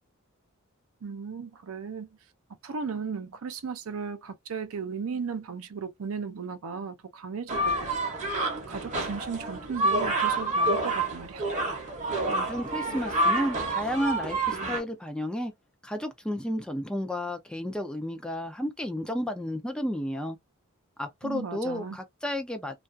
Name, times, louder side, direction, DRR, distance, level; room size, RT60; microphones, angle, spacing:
voice 1, 1.0-2.1 2.6-11.5 21.2-22.0, right 5 dB, 75° right, 0.5 m, -36 dB
sound 1, 7.5-14.8, right 2 dB, 35° right, 0.7 m, -28 dB
voice 2, 12.3-15.5 15.8-20.4 21.0-22.8, equal, 5° left, 0.3 m, -32 dB
2.3 x 2.3 x 2.5 m
head